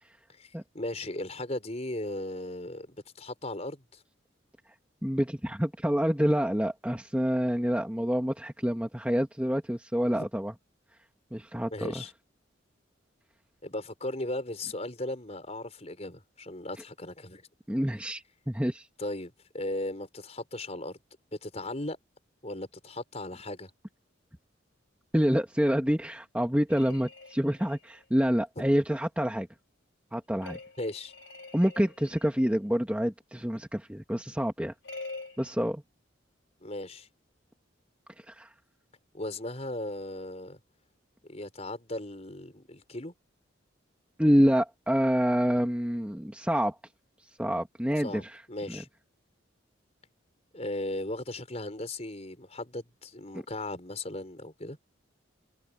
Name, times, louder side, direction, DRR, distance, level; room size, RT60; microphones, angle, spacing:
voice 1, 0.3-4.0 10.1-10.3 11.7-12.1 13.6-17.5 19.0-21.0 21.3-22.0 22.4-23.7 30.8-31.1 36.6-37.1 39.1-40.6 41.2-43.1 48.0-48.2 48.5-48.9 50.5-54.8, left 1 dB, 35° left, 5.2 m, -37 dB
voice 2, 5.0-10.5 11.3-12.0 17.7-18.9 25.1-29.5 30.1-30.6 31.5-34.7 35.4-35.8 38.3-38.5 44.2-46.8 47.4-48.4 48.7-48.8, equal, 5° right, 1.5 m, -27 dB
sound 1, 26.7-28.0 30.4-32.5 34.8-35.5, left 3 dB, 85° left, 4.7 m, -45 dB
head